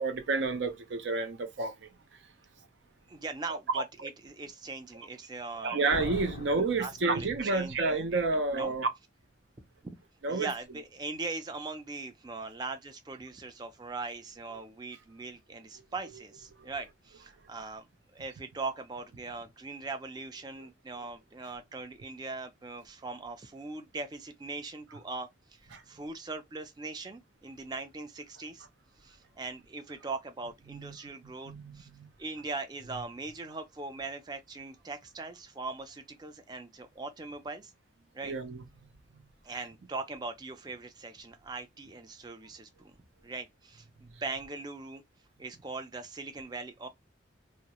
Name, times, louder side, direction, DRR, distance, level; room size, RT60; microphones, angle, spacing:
voice 1, 0.0-1.9 3.5-4.1 5.6-8.9 10.2-10.5 25.7-25.8 30.7-31.0 31.5-32.1 38.2-38.6 39.1-39.2 44.1-44.2, right 3 dB, 80° right, 0.5 m, -30 dB
voice 2, 3.1-5.8 6.8-8.1 8.5-8.7 9.6-9.9 10.3-17.9 18.1-28.7 29.0-31.9 32.2-37.7 38.1-38.3 39.4-42.9 43.2-45.0 45.4-46.9, right 3 dB, 20° right, 0.3 m, -40 dB
Slam, 5.9-7.8, left 4 dB, 80° left, 0.3 m, -41 dB
2.3 x 2.1 x 2.8 m
head